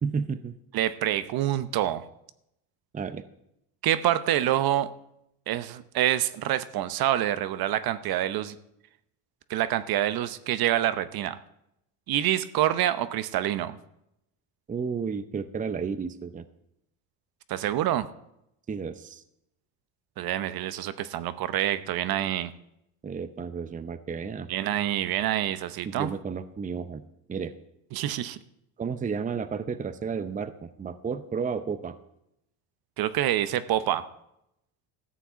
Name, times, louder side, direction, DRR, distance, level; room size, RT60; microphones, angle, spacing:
voice 1, 0.0-0.5 2.9-3.2 14.7-16.4 18.7-19.2 23.0-24.5 25.9-27.0 27.3-27.5 28.8-32.0, right 6 dB, 20° right, 12 dB, 0.7 m, -32 dB
voice 2, 0.7-2.0 3.8-4.9 5.5-8.6 9.5-11.4 12.1-13.8 17.5-18.1 20.2-22.5 24.5-26.1 27.9-28.4 33.0-34.1, right 12 dB, 55° right, 13 dB, 0.8 m, -26 dB
14.0 x 5.9 x 8.2 m, 0.81 s
supercardioid pair, 105°, 43 cm